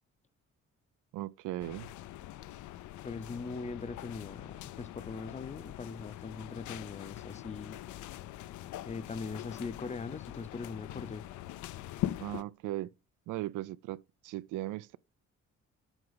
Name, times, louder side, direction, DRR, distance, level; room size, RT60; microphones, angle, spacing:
voice 1, 1.1-1.9 12.2-12.9 13.3-15.0, right 15 dB, 85° right, 0.5 m, -38 dB
sound 1, 1.6-12.4, left 14 dB, 75° left, 0.5 m, -42 dB
voice 2, 3.0-7.8 8.8-11.3, left 4 dB, 25° left, 0.5 m, -41 dB
7.9 x 4.7 x 3.9 m
cardioid pair, 90°, 30 cm